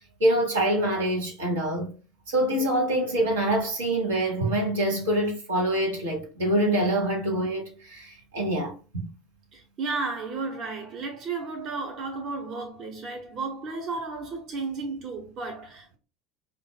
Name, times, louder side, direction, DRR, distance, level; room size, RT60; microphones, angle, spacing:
voice 1, 0.2-1.9 2.3-9.1, right 1 dB, 75° right, 1.3 m, -25 dB
voice 2, 9.5-16.0, right 4 dB, 45° right, 1.0 m, -33 dB
5.4 x 2.5 x 2.3 m
figure-of-eight pair, 75°, 0 cm